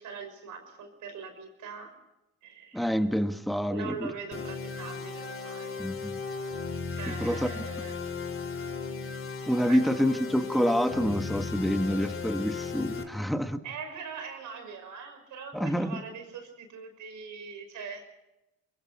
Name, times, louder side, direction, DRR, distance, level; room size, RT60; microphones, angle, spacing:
voice 1, 0.0-1.9 2.4-2.9 3.7-5.7 6.9-7.9 9.7-10.3 13.6-18.0, right 5 dB, 85° right, 6 dB, 6.1 m, -42 dB
voice 2, 2.7-4.1 5.8-6.2 7.0-7.5 9.5-13.6 15.5-15.9, equal, ahead, 7 dB, 1.7 m, -27 dB
sound 1, 4.3-13.0, left 4 dB, 45° left, 2.9 m, -36 dB
29.0 x 22.5 x 4.3 m, 0.93 s
cardioid pair, 90°, 30 cm